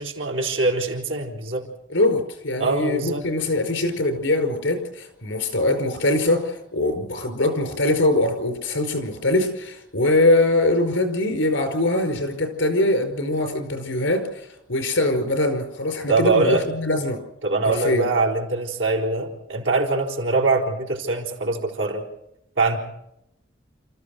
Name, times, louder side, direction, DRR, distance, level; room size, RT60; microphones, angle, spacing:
voice 1, 0.0-1.7 2.6-3.2 16.1-16.7 17.4-22.0 22.6-22.8, right 3 dB, 75° right, -1 dB, 4.1 m, -23 dB
voice 2, 1.9-17.2 17.6-18.1, left 2 dB, 80° left, 5 dB, 5.1 m, -22 dB
29.5 x 14.5 x 6.5 m, 0.84 s
head